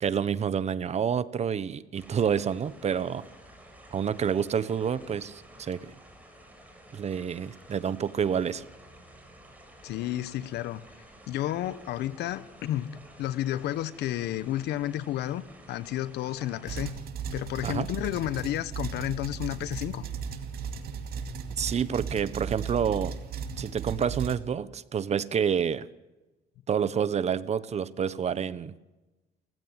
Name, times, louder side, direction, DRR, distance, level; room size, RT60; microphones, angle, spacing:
voice 1, 0.0-3.2 3.9-5.9 6.9-8.6 17.6-17.9 21.5-23.1 23.6-25.9 26.7-28.7, right 7 dB, 40° right, 1.1 m, -28 dB
sound 1, 1.9-16.9, right 1 dB, 10° right, 7.3 m, -52 dB
voice 2, 9.8-10.8 11.3-12.9 13.2-15.4 15.7-16.9 17.3-20.0, left 13 dB, 80° left, 1.2 m, -31 dB
sound 2, 16.6-24.4, right 6 dB, 65° right, 2.5 m, -36 dB
29.0 x 15.5 x 9.6 m
cardioid pair, 110°, 17 cm